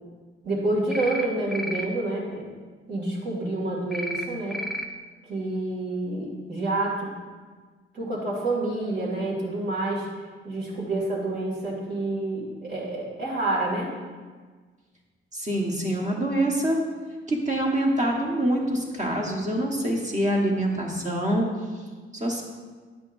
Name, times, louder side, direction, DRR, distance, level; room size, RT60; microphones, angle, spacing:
voice 1, 0.4-2.5 2.9-4.6 5.3-7.2 7.9-10.1 10.4-13.9, right 2 dB, 55° right, -4 dB, 2.4 m, -28 dB
sound 1, 0.9-1.3 1.5-1.9 3.9-4.2 4.5-4.8, equal, ahead, 0.4 m, -31 dB
voice 2, 15.3-16.8 17.3-21.5 22.1-22.4, right 1 dB, 35° right, 0 dB, 1.3 m, -25 dB
9.7 x 8.2 x 2.6 m, 1.4 s
wide cardioid pair, 145°, 21 cm